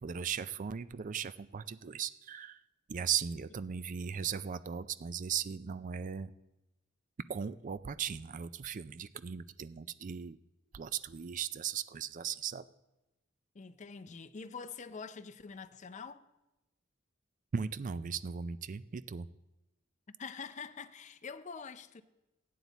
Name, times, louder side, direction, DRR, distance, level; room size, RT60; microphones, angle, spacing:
voice 1, 0.0-2.6 2.9-6.3 7.3-10.4 10.7-12.6 17.5-19.3, right 7 dB, 40° right, 0.4 m, -37 dB
voice 2, 13.5-16.2 20.2-22.0, left 5 dB, 35° left, 0.5 m, -45 dB
15.5 x 9.4 x 4.1 m
head